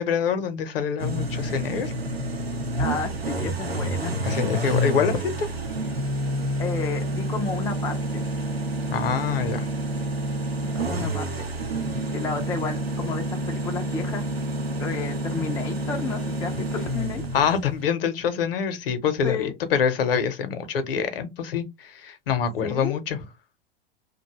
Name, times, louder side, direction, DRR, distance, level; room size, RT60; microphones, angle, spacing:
voice 1, 0.0-1.9 4.2-5.5 8.9-9.7 17.3-23.2, left 7 dB, 70° left, 0.7 m, -25 dB
sound 1, 1.0-17.8, right 1 dB, 90° right, 0.7 m, -28 dB
voice 2, 2.8-4.2 6.6-8.3 10.6-11.5 12.1-14.2 14.8-17.2 19.2-19.5 22.6-23.0, left 5 dB, 10° left, 0.3 m, -32 dB
2.6 x 2.2 x 2.9 m
figure-of-eight pair, 90°, 30 cm